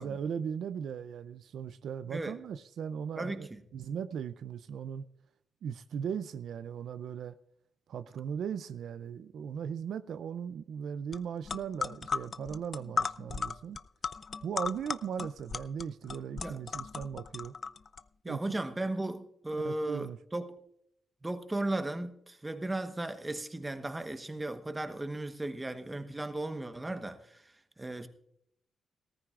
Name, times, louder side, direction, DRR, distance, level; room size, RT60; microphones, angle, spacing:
voice 1, 0.0-5.0 5.6-7.4 7.9-13.8 14.4-17.5 18.3-18.7 19.6-20.2, right 7 dB, 75° right, 0.4 m, -38 dB
voice 2, 3.2-3.6 16.4-16.6 18.2-20.5 21.2-27.4 27.8-28.1, right 2 dB, 15° right, 1.1 m, -36 dB
sound 1, 11.1-11.2 11.5-18.0, left 5 dB, 45° left, 0.4 m, -36 dB
18.0 x 14.0 x 2.5 m
cardioid pair, 90°, 0 cm